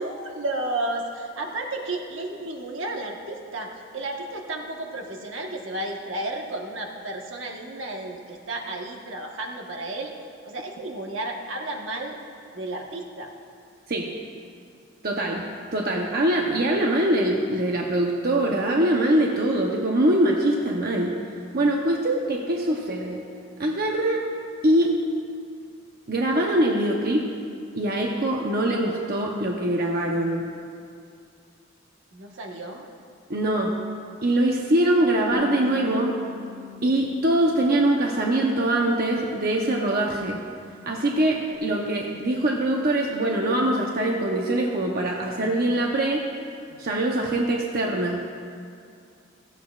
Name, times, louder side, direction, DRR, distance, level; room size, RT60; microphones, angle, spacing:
voice 1, 0.0-10.1 10.4-12.2 12.5-13.3 32.1-32.9, right 2 dB, 75° right, 1 dB, 1.3 m, -32 dB
voice 2, 15.0-21.2 21.5-23.2 23.6-24.2 24.6-24.9 26.1-27.2 27.7-30.5 33.3-33.8 34.2-36.1 36.8-40.4 40.9-46.2 46.8-48.2, right 1 dB, 50° right, 0 dB, 0.9 m, -23 dB
Bass guitar, 35.3-41.6, left 5 dB, 45° left, 1.4 m, -47 dB
16.5 x 14.0 x 2.4 m, 2.4 s
head